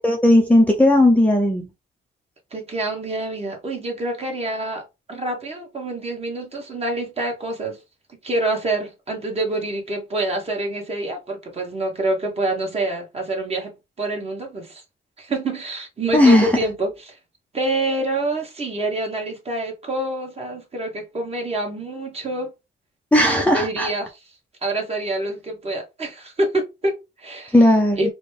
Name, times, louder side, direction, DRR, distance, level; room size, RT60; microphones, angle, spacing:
voice 1, 0.0-1.7 16.1-16.5 23.1-23.9 27.5-28.1, left 1 dB, 5° left, 0.8 m, -15 dB
voice 2, 2.5-7.8 8.2-14.8 15.2-17.2 17.5-22.5 23.2-24.1 24.6-27.5 28.0-28.1, right 2 dB, 30° right, 1.5 m, -26 dB
4.0 x 2.2 x 3.4 m
cardioid pair, 90°, 20 cm